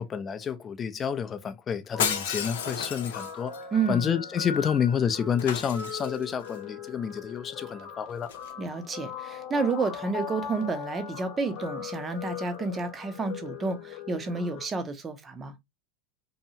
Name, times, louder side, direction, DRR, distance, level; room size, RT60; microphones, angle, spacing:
voice 1, 0.0-3.6 3.9-8.3, left 7 dB, 25° left, 0.4 m, -29 dB
Guitar, 1.9-14.6, left 7 dB, 50° left, 0.9 m, -40 dB
Shatter, 2.0-3.6 5.4-6.5 8.2-8.5, left 7 dB, 90° left, 0.6 m, -32 dB
voice 2, 3.7-4.1 8.6-15.5, right 4 dB, 20° right, 0.6 m, -30 dB
2.7 x 2.3 x 2.6 m
supercardioid pair, 130°, 0 cm